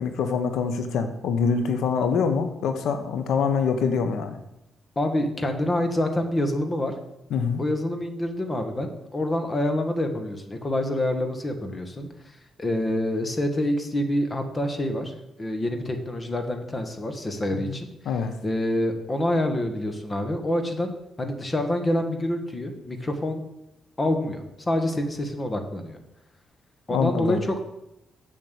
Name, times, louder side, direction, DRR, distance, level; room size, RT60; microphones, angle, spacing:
voice 1, 0.0-4.4 7.3-7.6 17.5-17.8 18.0-18.3 26.9-27.4, left 5 dB, 85° left, 8 dB, 1.1 m, -25 dB
voice 2, 4.9-6.9 7.6-12.1 12.6-15.1 15.4-17.9 18.4-20.9 21.2-23.4 24.0-26.0 26.9-27.6, left 1 dB, 25° left, 5 dB, 1.6 m, -26 dB
7.8 x 7.4 x 8.2 m, 0.87 s
cardioid pair, 130°, 0 cm